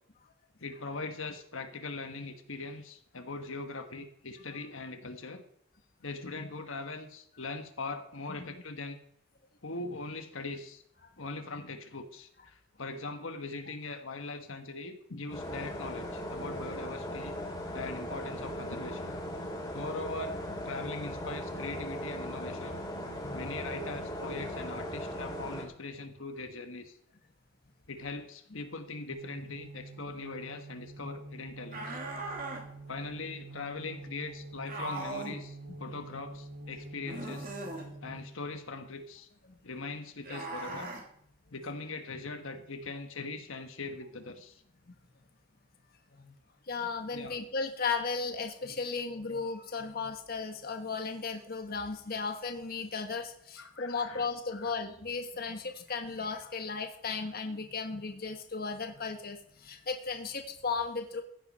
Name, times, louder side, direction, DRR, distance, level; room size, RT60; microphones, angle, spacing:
voice 1, 0.6-5.4 6.0-9.0 9.6-10.8 11.2-17.4 17.7-19.1 19.7-22.8 23.3-27.0 27.9-32.0 32.9-37.5 38.0-39.3 39.6-40.9 41.5-44.6 47.1-47.4 53.6-54.3 54.5-54.7, left 3 dB, 70° left, 6 dB, 1.4 m, -41 dB
sound 1, 15.3-25.6, equal, 20° left, 2.9 m, -38 dB
sound 2, 29.1-38.5, right 2 dB, 70° right, 4.3 m, -46 dB
sound 3, 31.7-32.6 34.7-35.4 37.0-37.9 40.2-41.0, right 2 dB, 40° right, 3.1 m, -39 dB
voice 2, 46.7-61.2, left 4 dB, 45° left, 5 dB, 1.3 m, -35 dB
15.5 x 9.2 x 5.4 m, 0.69 s
head